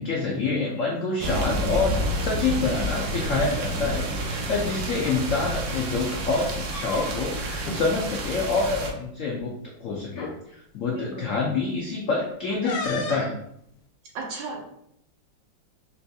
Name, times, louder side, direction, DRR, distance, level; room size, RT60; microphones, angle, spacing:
voice 1, 0.0-9.5 9.8-13.4, left 3 dB, 90° left, -2 dB, 0.6 m, -27 dB
sound 1, 1.2-8.9, right 1 dB, 65° right, 1.0 m, -29 dB
sound 2, 5.0-5.2 6.4-7.3 7.6-7.8 8.2-8.4 9.4-9.5 10.1-10.4 12.6-13.4, left 2 dB, 70° left, 1.1 m, -33 dB
voice 2, 10.9-11.3 14.1-14.6, right 4 dB, 85° right, -2 dB, 1.6 m, -34 dB
4.3 x 2.7 x 2.3 m, 0.73 s
omnidirectional pair, 2.0 m